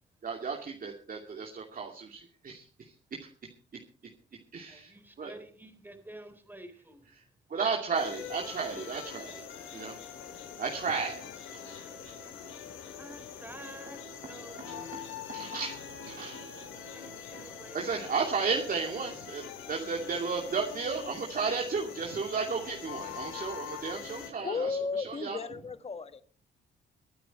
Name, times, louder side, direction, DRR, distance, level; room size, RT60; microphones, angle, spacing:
voice 1, 0.2-2.6 3.2-3.3 4.5-4.9 5.2-5.3 7.5-9.4 9.7-10.0 10.6-11.2 11.5-11.9 15.3-16.4 17.7-24.7 25.0-25.4, right 5 dB, 45° right, 2.6 m, -33 dB
voice 2, 4.7-7.1 13.0-15.0 16.9-18.2, right 1 dB, 10° right, 3.8 m, -49 dB
sound 1, 7.9-24.3, left 7 dB, 85° left, 3.9 m, -43 dB
voice 3, 24.4-26.2, left 4 dB, 30° left, 1.4 m, -34 dB
23.0 x 9.1 x 4.4 m
cardioid pair, 90°, 20 cm